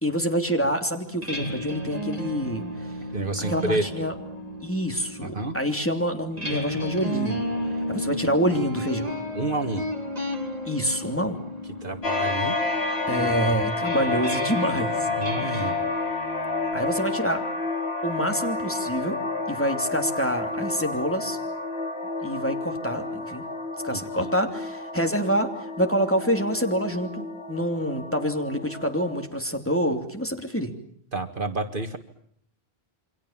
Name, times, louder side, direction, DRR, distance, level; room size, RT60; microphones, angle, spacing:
voice 1, 0.0-2.6 3.5-4.1 4.6-7.4 7.9-9.1 10.6-11.4 13.1-15.1 15.4-15.7 16.7-17.4 18.0-19.2 19.5-21.4 22.2-23.4 23.8-25.5 25.8-30.7, equal, 10° left, 4 dB, 3.0 m, -27 dB
sound 1, 1.1-16.7, equal, 40° right, 4.1 m, -34 dB
voice 2, 3.1-4.1 5.2-5.6 9.3-9.9 11.8-12.6 15.1-15.8 23.9-24.3 31.1-32.0, right 2 dB, 55° right, 8 dB, 2.0 m, -29 dB
sound 2, 12.0-29.3, left 3 dB, 80° left, 3.4 m, -30 dB
29.0 x 25.0 x 7.4 m, 0.64 s
omnidirectional pair, 1.1 m